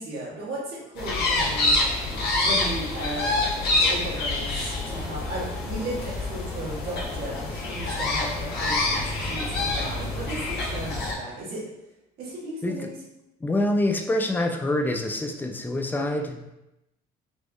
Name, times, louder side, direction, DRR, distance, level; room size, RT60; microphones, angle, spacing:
voice 1, 0.0-1.8 2.4-11.6 12.2-12.9, right 1 dB, 70° right, -5 dB, 1.5 m, -35 dB
sound 1, 1.0-11.1, left 2 dB, 75° left, 1.0 m, -27 dB
voice 2, 13.4-16.6, left 1 dB, 10° left, 4 dB, 0.4 m, -26 dB
4.3 x 2.8 x 2.3 m, 0.90 s
cardioid pair, 110°, 17 cm